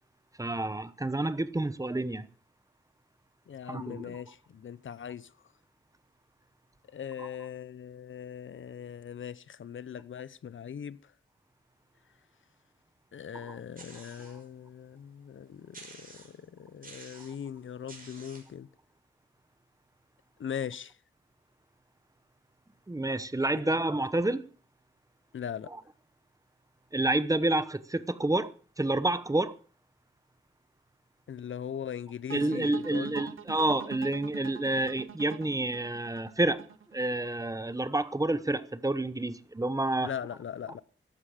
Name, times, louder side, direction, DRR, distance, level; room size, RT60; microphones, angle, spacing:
voice 1, 0.4-2.2 3.7-4.2 22.9-24.4 26.9-28.5 28.8-29.5 32.3-36.6 36.9-40.1, right 2 dB, 15° right, 0.9 m, -29 dB
voice 2, 3.5-5.3 6.9-11.1 13.1-18.7 20.4-21.0 25.3-25.7 31.3-33.2 40.0-40.8, left 8 dB, 75° left, 0.7 m, -40 dB
sound 1, 13.8-14.5 15.0-15.1 15.7-16.5 16.8-17.4 17.9-18.5, right 3 dB, 45° right, 5.9 m, -50 dB
sound 2, 32.3-37.4, right 8 dB, 90° right, 1.0 m, -44 dB
15.0 x 12.0 x 5.0 m
wide cardioid pair, 120°, 20 cm